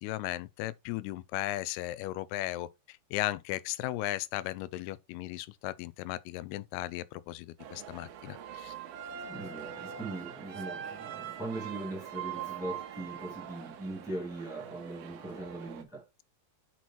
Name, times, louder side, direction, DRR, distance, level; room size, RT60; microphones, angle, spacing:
voice 1, 0.0-8.7, left 16 dB, 85° left, 2.5 m, -36 dB
sound 1, 7.6-15.8, right 9 dB, 75° right, 2.7 m, -43 dB
voice 2, 9.3-16.0, right 2 dB, ahead, 1.4 m, -40 dB
6.2 x 5.9 x 4.0 m
omnidirectional pair, 4.5 m